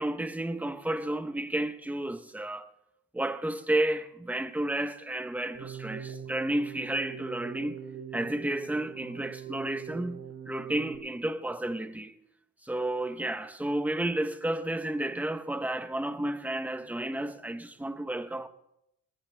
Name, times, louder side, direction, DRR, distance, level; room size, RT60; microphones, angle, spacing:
voice 1, 0.0-2.7 3.1-7.8 8.1-10.2 10.5-12.1 12.6-18.5, right 1 dB, 5° right, 0.8 m, -31 dB
Keyboard (musical), 5.5-11.0, right 7 dB, 55° right, 4.0 m, -42 dB
23.0 x 19.0 x 2.2 m
cardioid pair, 90°, 30 cm